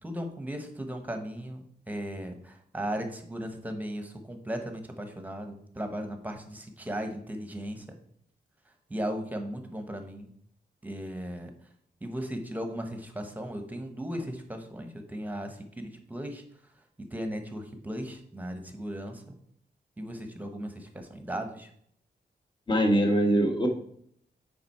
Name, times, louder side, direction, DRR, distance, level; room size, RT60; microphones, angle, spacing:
voice 1, 0.0-8.0 8.9-10.3 10.8-11.5 12.0-16.4 17.0-19.4 20.0-21.7, equal, 10° right, 5 dB, 1.1 m, -37 dB
voice 2, 22.7-23.7, right 1 dB, 25° left, 3 dB, 1.3 m, -23 dB
7.7 x 5.1 x 4.3 m, 0.66 s
wide cardioid pair, 110°, 18 cm